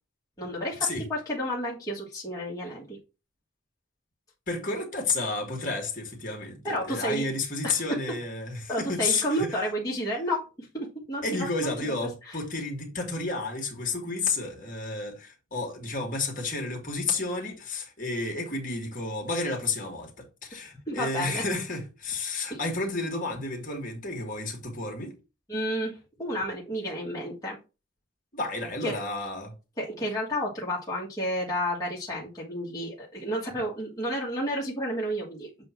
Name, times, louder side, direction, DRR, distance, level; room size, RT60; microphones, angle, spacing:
voice 1, 0.4-3.0 6.6-7.3 7.6-7.8 8.7-11.7 12.2-12.4 20.9-21.4 22.5-22.6 25.5-27.6 28.8-29.0 29.8-35.5, equal, 15° left, 1.5 m, -31 dB
voice 2, 4.5-9.6 11.2-20.1 20.4-25.1 28.3-29.5, left 3 dB, 40° left, 1.9 m, -31 dB
7.6 x 2.7 x 5.9 m
head